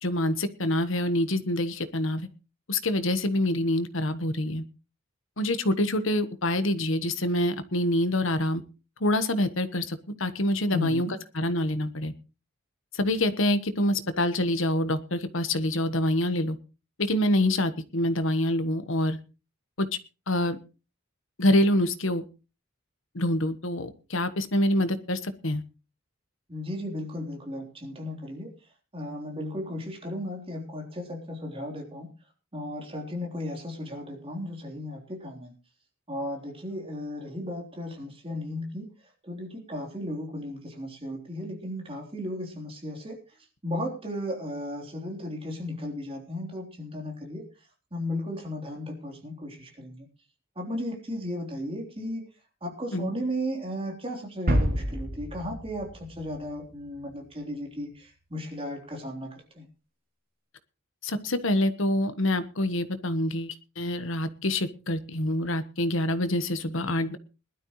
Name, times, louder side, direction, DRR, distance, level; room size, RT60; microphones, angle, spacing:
voice 1, 0.0-2.3 2.7-4.6 5.4-8.6 9.0-11.1 11.3-12.1 12.9-16.6 17.0-19.2 19.8-19.9 20.3-20.6 21.4-22.2 23.1-25.6 52.9-53.1 61.0-67.2, left 1 dB, 65° left, 11 dB, 1.3 m, -26 dB
voice 2, 10.7-11.1 26.5-28.5 28.9-32.1 32.5-35.5 36.1-38.9 39.2-43.2 43.6-47.4 47.9-50.1 50.6-52.2 52.6-59.7, left 1 dB, 25° right, 1 dB, 3.6 m, -35 dB
sound 1, 54.5-57.1, equal, 45° right, 3.0 m, -29 dB
20.5 x 12.0 x 3.2 m, 0.32 s
head